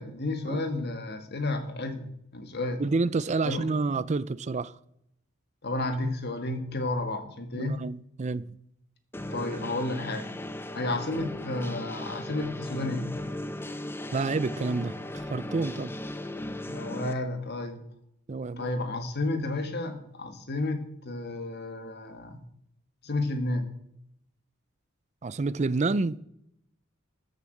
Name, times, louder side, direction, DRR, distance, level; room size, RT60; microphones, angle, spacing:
voice 1, 0.0-2.8 3.4-3.7 5.6-7.8 9.3-10.3 10.7-13.1 16.6-17.8 18.6-22.4 23.0-23.7, left 2 dB, 50° left, 1.6 m, -32 dB
voice 2, 2.8-4.7 7.5-8.6 14.1-15.0 15.3-15.9 18.3-18.7 25.2-26.2, right 3 dB, 35° right, 0.4 m, -28 dB
sound 1, 9.1-17.1, left 1 dB, 10° left, 0.7 m, -37 dB
13.5 x 7.0 x 7.8 m
head